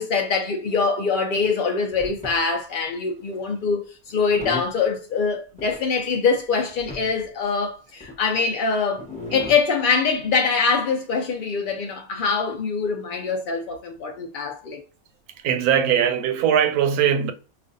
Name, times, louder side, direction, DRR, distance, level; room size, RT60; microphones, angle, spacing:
voice 1, 0.0-9.0 9.3-14.8, left 5 dB, 70° left, 0.4 m, -24 dB
sound 1, 1.9-2.4 3.3-3.6 4.1-4.8 5.6-5.8 6.4-6.5 6.7-7.3 8.0-8.2 9.0-9.6 10.2-10.3, left 2 dB, 5° left, 0.8 m, -35 dB
voice 2, 15.4-17.3, right 8 dB, 90° right, 1.1 m, -20 dB
4.9 x 2.4 x 2.6 m
omnidirectional pair, 1.5 m